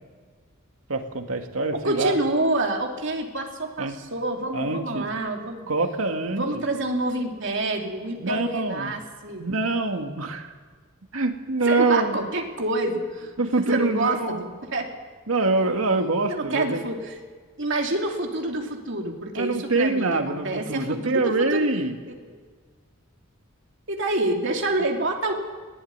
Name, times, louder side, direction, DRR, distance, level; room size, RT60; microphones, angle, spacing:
voice 1, 0.9-2.2 3.8-4.0 4.5-5.1 5.7-6.6 8.2-8.9 9.4-10.5 11.1-12.2 13.4-14.5 15.3-16.8 19.3-21.9, right 3 dB, 85° right, 5 dB, 2.1 m, -25 dB
voice 2, 1.7-5.7 6.3-9.5 11.6-13.3 13.6-14.9 16.3-17.0 17.6-21.7 22.1-22.2 23.9-25.3, right 2 dB, 60° right, 1 dB, 3.1 m, -27 dB
20.5 x 15.5 x 9.6 m, 1.5 s
head